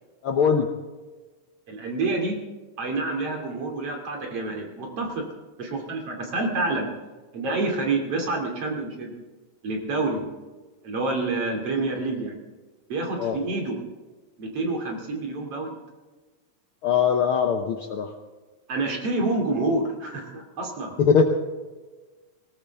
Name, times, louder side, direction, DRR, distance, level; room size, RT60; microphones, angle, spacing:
voice 1, 0.2-0.7 13.2-13.4 16.8-18.1 21.0-21.2, left 6 dB, 65° left, 3 dB, 1.4 m, -21 dB
voice 2, 1.7-2.4 2.8-5.3 5.6-6.9 7.3-9.1 9.6-10.3 10.8-12.4 12.9-13.8 14.4-15.8 18.7-20.9, right 2 dB, 50° right, 1 dB, 3.6 m, -28 dB
19.0 x 19.0 x 3.6 m, 1.3 s
omnidirectional pair, 3.4 m